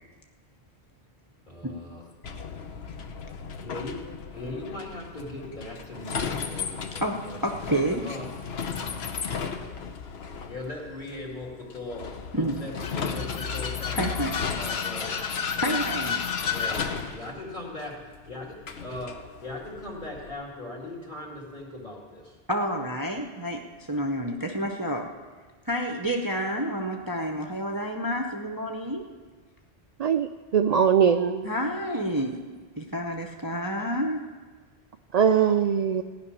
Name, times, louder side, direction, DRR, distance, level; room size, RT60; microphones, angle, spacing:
voice 1, 1.5-2.0 3.5-8.3 10.4-14.3 14.6-15.2 15.5-15.8 16.4-16.8 17.1-18.0 18.3-22.4 33.4-33.7, left 2 dB, 45° left, -2 dB, 2.6 m, -39 dB
Vehicle, 2.2-20.3, left 6 dB, 70° left, 1.1 m, -33 dB
voice 2, 7.4-8.0 12.3-12.6 13.9-14.4 15.6-16.3 22.5-23.6 23.9-25.1 25.7-29.0 31.4-32.4 32.8-34.2, equal, 20° right, 2 dB, 0.7 m, -29 dB
voice 3, 30.0-31.5 35.1-36.0, right 8 dB, 60° right, 8 dB, 0.4 m, -21 dB
15.5 x 6.0 x 9.9 m, 1.5 s
omnidirectional pair, 1.1 m